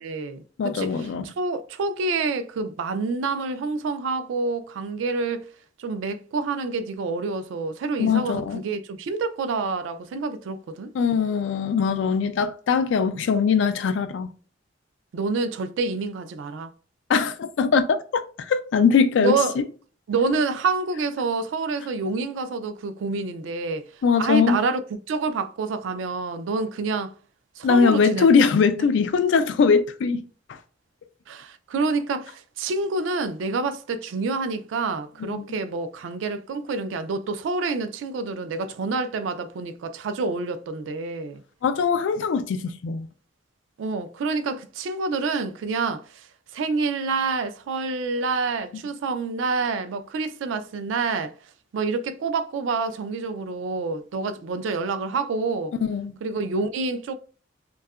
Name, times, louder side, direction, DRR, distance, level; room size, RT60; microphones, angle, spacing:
voice 1, 0.0-5.5 5.8-10.9 15.1-16.7 19.2-19.6 20.1-23.8 24.2-24.8 25.1-27.1 27.6-28.3 28.8-28.9 31.3-41.4 43.8-46.3 46.5-51.3 51.7-55.7 56.2-57.1, right 4 dB, 90° right, 0.3 m, -27 dB
voice 2, 0.6-1.2 8.0-8.6 10.9-14.3 17.1-19.6 24.0-24.6 27.6-30.2 35.2-35.5 41.6-43.1 55.8-56.1, left 5 dB, 75° left, 0.3 m, -21 dB
2.7 x 2.3 x 2.2 m
head